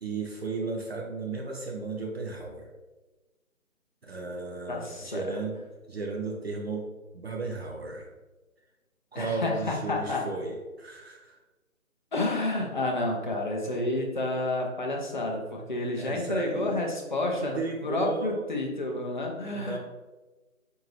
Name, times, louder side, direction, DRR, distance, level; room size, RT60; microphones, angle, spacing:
voice 1, 0.0-2.7 4.0-5.6 5.9-6.9 7.1-8.1 9.1-11.4 16.0-16.8 17.4-18.4 19.5-19.8, right 3 dB, 45° right, 0 dB, 0.5 m, -34 dB
voice 2, 4.7-5.2 9.1-10.2 12.1-19.8, left 2 dB, 35° left, 0 dB, 0.5 m, -30 dB
4.4 x 2.6 x 3.1 m, 1.2 s
figure-of-eight pair, 150°, 42 cm